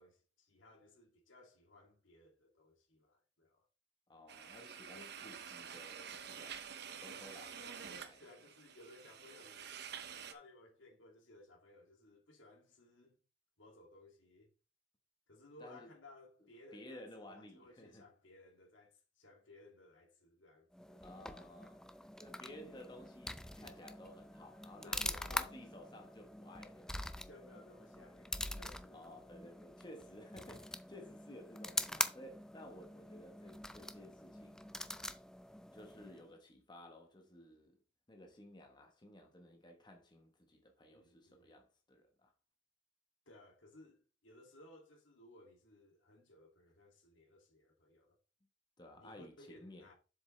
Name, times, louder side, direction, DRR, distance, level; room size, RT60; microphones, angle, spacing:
voice 1, 0.0-3.6 4.9-5.3 8.2-9.7 10.1-13.2 13.6-14.5 15.3-21.0 24.8-25.5 27.3-29.1 40.8-41.6 43.3-48.2 48.9-49.9, left 2 dB, 80° left, 2.4 m, -60 dB
voice 2, 4.1-6.7 7.0-8.2 15.6-15.9 16.7-18.0 21.0-21.8 22.2-27.1 28.9-34.7 35.7-37.8 38.1-42.3 48.8-49.9, left 1 dB, 25° left, 1.1 m, -55 dB
sound 1, 4.3-10.3, right 7 dB, 60° right, 0.9 m, -49 dB
sound 2, 20.7-36.3, left 1 dB, 5° left, 0.4 m, -44 dB
7.4 x 7.1 x 3.2 m
head